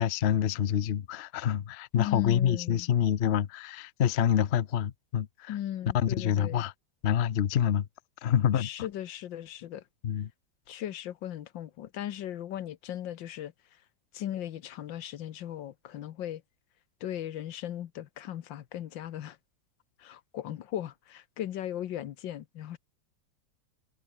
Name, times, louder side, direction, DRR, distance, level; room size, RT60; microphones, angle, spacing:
voice 1, 0.0-5.5 5.9-6.7 7.0-7.9 8.2-8.7 10.0-10.3, left 9 dB, 55° left, 0.7 m, -27 dB
voice 2, 1.9-2.9 5.5-6.6 8.5-9.8 10.7-13.5 14.1-16.4 17.0-19.4 20.0-22.8, left 11 dB, 75° left, 1.7 m, -37 dB
omnidirectional pair, 2.1 m